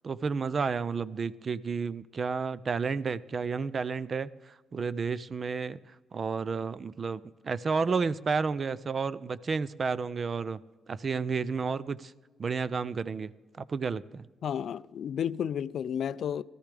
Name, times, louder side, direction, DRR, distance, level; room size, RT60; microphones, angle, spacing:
voice 1, 0.0-5.8 6.1-10.6 10.9-12.1 12.4-13.3 13.6-14.3, right 5 dB, 40° right, 0.4 m, -31 dB
voice 2, 14.4-16.4, left 8 dB, 65° left, 0.3 m, -32 dB
17.0 x 13.5 x 3.4 m
cardioid pair, 90°, 0 cm